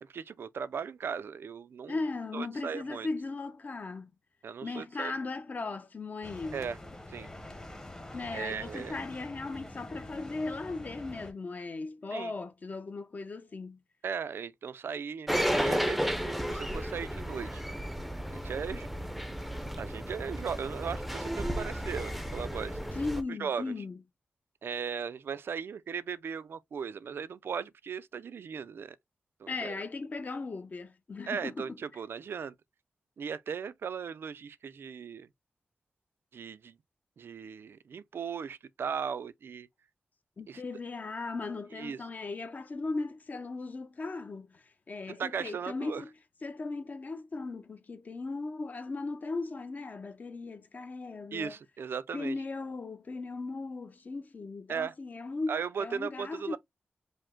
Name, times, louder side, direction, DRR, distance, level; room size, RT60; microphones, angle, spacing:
voice 1, 0.0-2.0 2.3-3.1 4.4-5.1 6.5-6.8 7.1-7.3 8.3-9.0 12.1-12.3 14.0-17.6 18.3-19.0 19.8-23.0 23.4-23.6 24.6-29.0 29.4-29.8 31.3-32.5 33.2-35.3 36.3-36.8 37.2-39.7 40.5-40.6 41.8-42.0 45.1-46.0 51.3-52.4 54.7-54.9 55.5-56.6, right 6 dB, 80° right, 0.4 m, -37 dB
voice 2, 1.9-4.1 4.6-6.6 8.1-13.8 22.9-24.0 29.5-31.7 40.4-46.1 46.4-51.5 52.1-56.6, left 3 dB, 45° left, 0.7 m, -37 dB
sound 1, 6.2-11.3, left 1 dB, 15° left, 0.9 m, -45 dB
sound 2, 15.3-23.2, equal, ahead, 0.5 m, -33 dB
5.1 x 2.1 x 3.6 m
wide cardioid pair, 130°, 4 cm